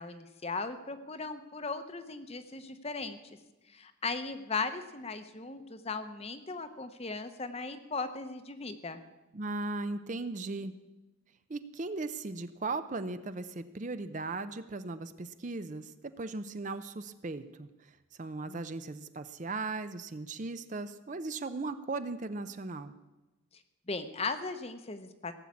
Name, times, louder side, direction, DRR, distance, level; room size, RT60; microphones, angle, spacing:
voice 1, 0.0-3.2 3.7-9.0 18.5-18.7 23.9-25.3, left 4 dB, 30° left, 9 dB, 0.8 m, -37 dB
voice 2, 9.3-10.7 11.5-22.9, right 3 dB, 35° right, 11 dB, 0.5 m, -37 dB
17.0 x 7.3 x 8.4 m, 1.1 s
head